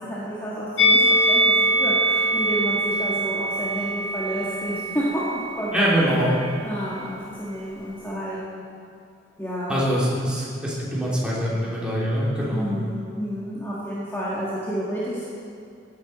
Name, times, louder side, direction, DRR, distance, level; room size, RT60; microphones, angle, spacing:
voice 1, 0.0-5.9 6.6-8.6 9.4-9.7 12.5-15.2, equal, 15° left, -9 dB, 2.0 m, -30 dB
Musical instrument, 0.8-6.0 6.3-6.5, right 1 dB, 75° left, 2.3 m, -22 dB
voice 2, 5.7-6.3 9.7-12.7, equal, 5° right, -7 dB, 3.2 m, -23 dB
16.5 x 9.8 x 4.4 m, 2.4 s
head